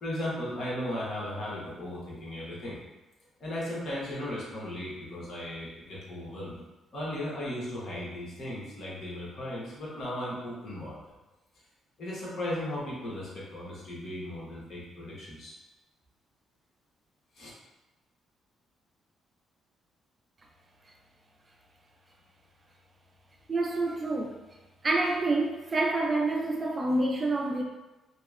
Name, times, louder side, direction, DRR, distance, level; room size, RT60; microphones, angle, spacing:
voice 1, 0.0-2.8 3.4-6.6 6.9-11.0 12.0-15.5 17.3-17.5, left 1 dB, 60° left, -6 dB, 1.0 m, -36 dB
voice 2, 23.5-24.4 24.8-27.6, right 2 dB, 30° right, 1 dB, 0.3 m, -27 dB
2.8 x 2.1 x 2.3 m, 1.1 s
cardioid pair, 90°, 0 cm